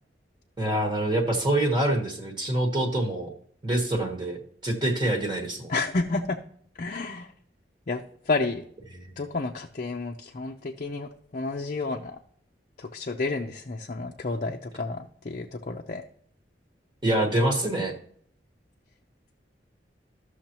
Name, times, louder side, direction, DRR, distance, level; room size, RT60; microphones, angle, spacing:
voice 1, 0.6-3.3 3.6-5.7 17.0-17.9, right 1 dB, 25° right, 1 dB, 1.2 m, -25 dB
voice 2, 5.7-6.4 6.8-7.3 7.9-8.0 8.3-8.6 9.2-12.2 12.8-16.0, left 3 dB, 45° left, 1 dB, 0.6 m, -30 dB
13.5 x 6.4 x 2.9 m, 0.62 s
head